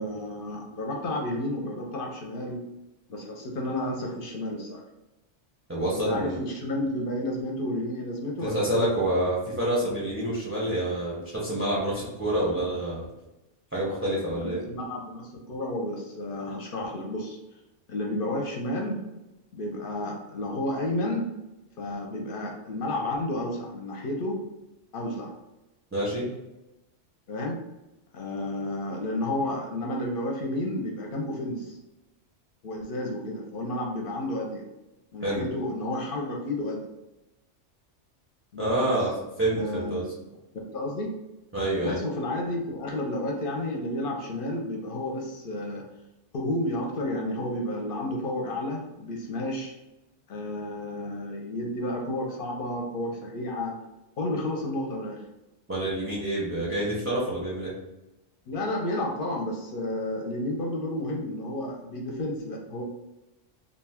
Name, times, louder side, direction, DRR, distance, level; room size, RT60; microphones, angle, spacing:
voice 1, 0.0-2.6 3.1-4.8 6.1-8.9 14.4-17.4 17.9-19.0 19.5-21.3 21.8-24.4 24.9-25.3 27.3-27.6 28.1-31.8 32.6-34.6 35.1-36.8 38.5-39.0 39.6-40.0 40.7-41.1 41.8-45.8 46.3-49.8 50.3-53.8 54.2-55.2 58.5-62.8, left 1 dB, 60° left, 0 dB, 0.6 m, -31 dB
voice 2, 5.7-6.4 8.4-13.1 13.7-14.6 25.9-26.2 35.2-35.4 38.6-39.1 39.4-40.1 41.5-42.0 55.7-57.7, right 1 dB, 15° right, -6 dB, 0.5 m, -27 dB
2.5 x 2.2 x 3.4 m, 0.99 s
omnidirectional pair, 1.2 m